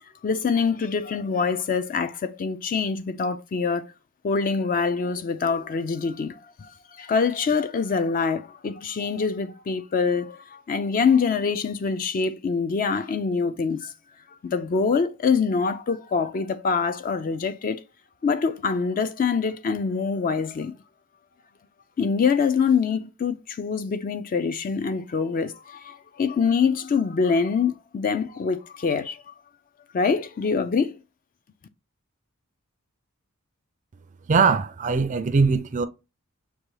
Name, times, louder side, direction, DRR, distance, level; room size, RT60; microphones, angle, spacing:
voice 1, 0.2-3.8 4.2-13.9 14.4-17.8 18.2-20.7 22.0-29.3 29.9-31.0, left 5 dB, 40° left, 0.3 m, -25 dB
voice 2, 34.3-35.9, right 5 dB, 35° right, 0.3 m, -21 dB
6.7 x 2.2 x 3.1 m
head